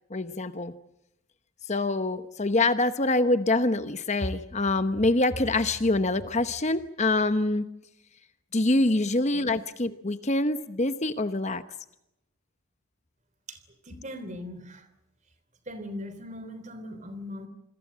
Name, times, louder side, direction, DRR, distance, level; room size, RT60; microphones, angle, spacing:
voice 1, 0.1-0.7 1.7-7.6 8.5-11.6, left 2 dB, 30° left, 11 dB, 1.0 m, -25 dB
voice 2, 9.1-9.6 13.5-13.6 13.8-14.9 15.7-17.5, left 1 dB, 35° right, 12 dB, 3.4 m, -40 dB
27.5 x 22.0 x 7.5 m, 0.85 s
head